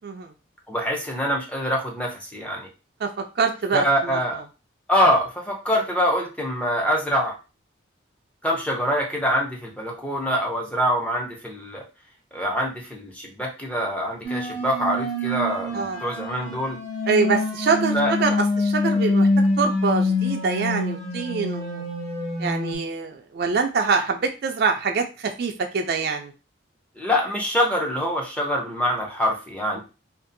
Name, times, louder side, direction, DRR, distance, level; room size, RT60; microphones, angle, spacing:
voice 1, 0.7-2.7 3.7-4.4 4.9-7.4 8.4-11.8 12.3-16.8 17.9-18.1 27.0-29.8, equal, 5° left, -1 dB, 0.5 m, -24 dB
voice 2, 3.0-4.2 15.7-16.1 17.1-19.3 19.6-21.8 22.4-26.3, right 5 dB, 55° right, 5 dB, 0.4 m, -25 dB
sound 1, 14.2-22.7, left 2 dB, 35° left, 1.3 m, -25 dB
2.6 x 2.4 x 2.6 m, 0.31 s
head